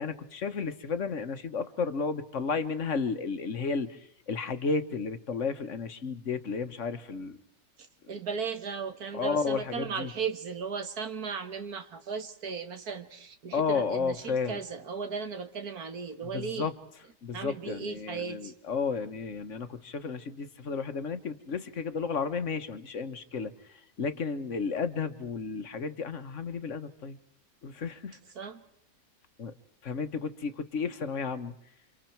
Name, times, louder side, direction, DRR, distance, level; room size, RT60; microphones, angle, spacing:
voice 1, 0.0-7.4 9.1-10.1 13.5-14.6 16.3-16.7 17.2-27.2 27.6-28.2 29.4-29.5 29.8-31.6, left 5 dB, 55° left, 10 dB, 1.4 m, -32 dB
voice 2, 7.8-16.7 17.3-18.5 28.3-28.6, right 5 dB, 85° right, 9 dB, 2.1 m, -36 dB
29.0 x 26.0 x 4.5 m, 0.74 s
omnidirectional pair, 1.6 m